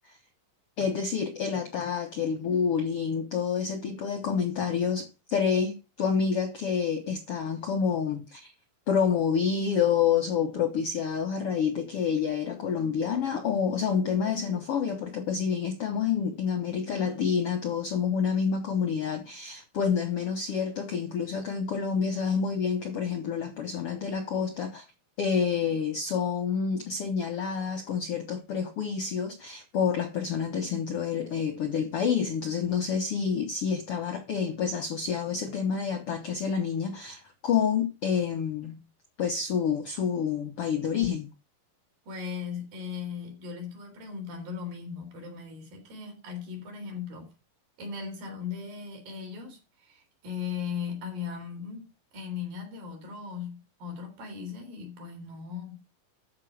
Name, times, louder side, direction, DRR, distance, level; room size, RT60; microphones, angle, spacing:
voice 1, 0.8-8.5 8.9-24.8 25.2-38.8 39.2-41.3, left 6 dB, 70° left, 1.4 m, -28 dB
voice 2, 42.1-47.3 47.8-55.8, left 6 dB, 70° right, 5.5 m, -38 dB
13.0 x 5.3 x 6.3 m
omnidirectional pair, 4.2 m